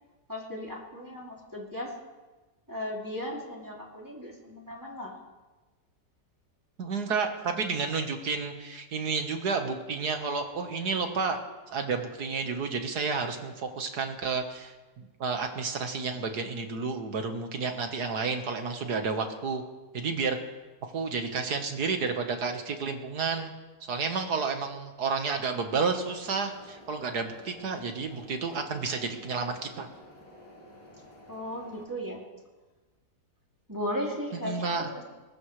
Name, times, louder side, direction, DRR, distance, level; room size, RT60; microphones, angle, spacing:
voice 1, 0.3-1.9 2.7-5.1 31.3-32.2 33.7-35.0, equal, 10° right, -3 dB, 2.7 m, -36 dB
voice 2, 6.8-11.4 11.7-19.6 19.9-20.4 20.9-23.5 23.9-29.9 34.4-34.9, right 4 dB, 70° right, 5 dB, 1.9 m, -31 dB
sound 1, 26.1-31.8, left 1 dB, 55° left, 7.9 m, -52 dB
21.5 x 19.5 x 3.3 m, 1.2 s
omnidirectional pair, 1.8 m